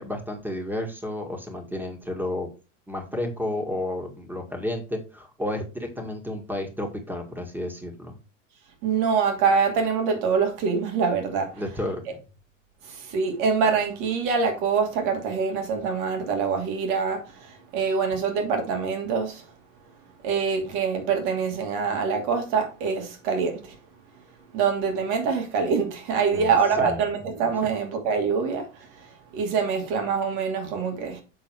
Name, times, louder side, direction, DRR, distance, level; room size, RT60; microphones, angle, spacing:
voice 1, 0.0-2.5 2.9-8.2 11.6-12.2 26.3-27.0, left 1 dB, 5° right, 1.9 m, -32 dB
voice 2, 8.8-11.6 12.8-19.5 20.2-23.8 24.5-31.2, right 5 dB, 60° right, 2.6 m, -25 dB
7.5 x 4.0 x 4.7 m
hypercardioid pair, 105°, 38 cm